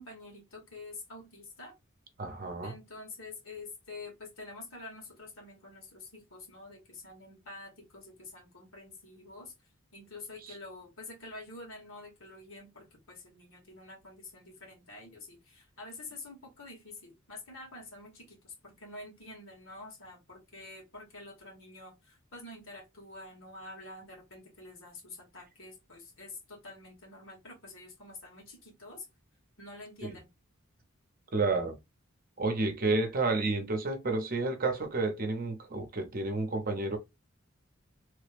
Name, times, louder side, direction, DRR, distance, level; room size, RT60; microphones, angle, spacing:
voice 1, 0.0-1.8 2.6-9.5 9.9-29.1 29.6-30.3, left 2 dB, 75° left, 1.7 m, -48 dB
voice 2, 2.2-2.7 30.1-30.2 31.3-31.8 32.4-37.0, right 3 dB, 45° right, 0.8 m, -30 dB
3.2 x 2.3 x 3.3 m
head